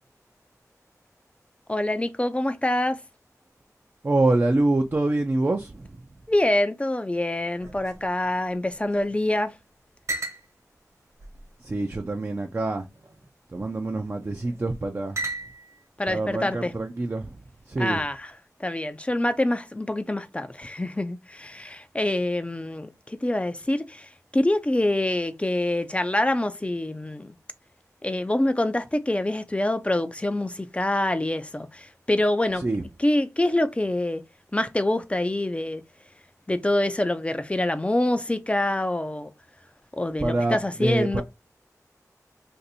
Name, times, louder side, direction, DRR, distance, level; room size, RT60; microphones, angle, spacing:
voice 1, 1.7-3.0 6.3-9.6 16.0-16.7 17.8-18.3 18.6-27.3 28.0-32.6 33.0-34.2 34.5-35.8 36.5-39.3 40.0-41.2, left 1 dB, 20° left, 0.4 m, -25 dB
voice 2, 4.0-6.0 11.6-12.8 13.5-15.2 16.1-17.3 17.7-18.0 32.6-32.8 40.2-41.2, right 2 dB, 35° right, 0.5 m, -25 dB
sound 1, 7.6-9.2 9.5-9.6 10.1-10.5 11.2-12.0 12.9-13.3 14.2-14.6 15.2-15.8, right 2 dB, 55° right, 1.2 m, -36 dB
2.6 x 2.6 x 4.1 m
wide cardioid pair, 55°, 6 cm